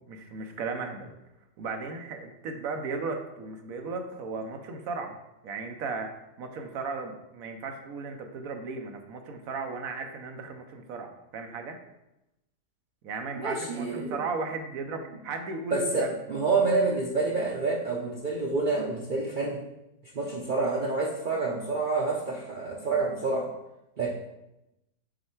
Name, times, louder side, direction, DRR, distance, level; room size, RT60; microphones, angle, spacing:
voice 1, 0.1-1.1 1.6-5.2 5.4-6.1 6.4-11.8 13.0-16.1, right 4 dB, 65° right, 4 dB, 1.0 m, -35 dB
voice 2, 13.4-14.2 15.7-19.6 20.1-23.5 24.0-24.1, right 3 dB, 80° right, -2 dB, 0.4 m, -28 dB
6.4 x 3.2 x 4.5 m, 0.91 s
omnidirectional pair, 1.8 m